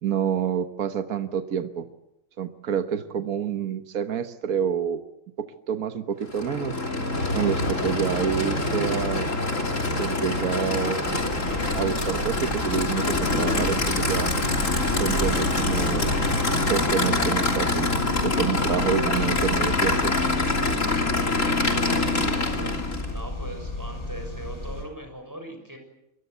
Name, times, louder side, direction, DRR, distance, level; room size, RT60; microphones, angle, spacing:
voice 1, 0.0-1.9 2.4-5.0 5.4-6.8 7.3-9.4 10.0-11.2 11.7-14.3 15.0-16.1 16.6-17.9 18.2-20.1, right 8 dB, 75° right, 8 dB, 1.6 m, -28 dB
Aircraft / Idling, 6.2-23.2, left 2 dB, 55° left, 3.5 m, -25 dB
Mechanical fan, 7.1-20.5, left 1 dB, 85° left, 4.1 m, -34 dB
sound 1, 11.0-24.9, equal, 25° left, 6.1 m, -35 dB
voice 2, 21.6-22.8 23.0-25.8, equal, 10° right, 5 dB, 6.5 m, -40 dB
27.5 x 23.0 x 8.1 m, 0.90 s
omnidirectional pair, 1.5 m